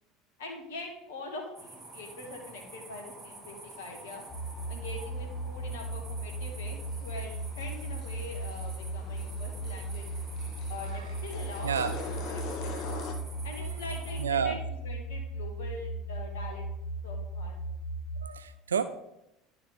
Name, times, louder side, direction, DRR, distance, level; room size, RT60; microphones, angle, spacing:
voice 1, 0.4-4.2 4.7-10.1 10.7-12.9 13.4-16.6 17.0-17.6, left 2 dB, 70° left, 1 dB, 1.8 m, -43 dB
sound 1, 1.6-14.2, right 2 dB, 30° right, 2.1 m, -49 dB
sound 2, 3.7-3.8 4.1-4.2 6.7-13.2, left 4 dB, 50° left, 1.0 m, -43 dB
sound 3, 4.3-18.3, right 1 dB, 5° left, 1.7 m, -37 dB
voice 2, 11.6-12.0 13.6-13.8 14.2-14.6 16.5-16.6 18.2-18.8, right 7 dB, 80° right, 12 dB, 0.3 m, -30 dB
11.0 x 4.7 x 3.5 m, 0.86 s
figure-of-eight pair, 70°, 0 cm